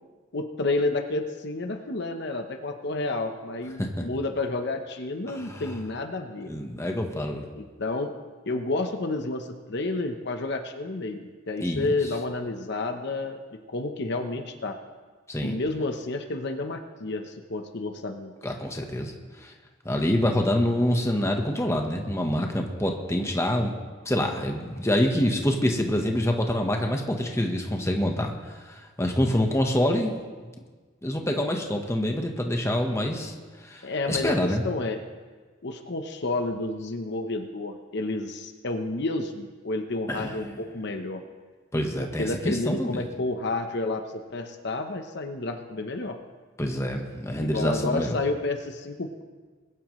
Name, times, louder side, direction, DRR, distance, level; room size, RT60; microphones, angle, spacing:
voice 1, 0.3-6.5 7.5-8.1 8.5-14.8 15.4-18.3 33.8-35.0 35.6-41.2 42.0-46.2 47.4-49.2, left 2 dB, 55° left, 6 dB, 0.9 m, -30 dB
voice 2, 5.3-5.6 6.5-7.5 11.6-11.9 15.3-15.5 18.4-19.1 19.4-19.5 19.8-23.7 24.0-28.3 28.6-30.1 31.0-33.3 33.6-34.6 40.1-40.4 41.7-43.0 46.6-48.2, left 1 dB, 15° left, 2 dB, 1.2 m, -26 dB
21.0 x 11.0 x 3.2 m, 1.4 s
head